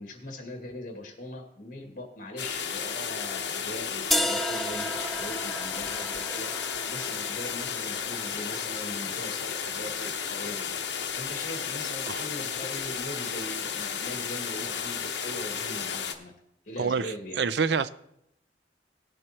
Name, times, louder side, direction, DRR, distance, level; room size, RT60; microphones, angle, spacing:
voice 1, 0.0-16.3 16.6-17.5, left 1 dB, 50° left, 2.1 m, -41 dB
sound 1, 2.4-16.1, left 7 dB, 80° left, 1.0 m, -33 dB
sound 2, 4.1-10.1, equal, ahead, 0.3 m, -34 dB
voice 2, 16.8-17.9, right 5 dB, 70° right, 0.4 m, -27 dB
19.0 x 7.6 x 3.0 m
head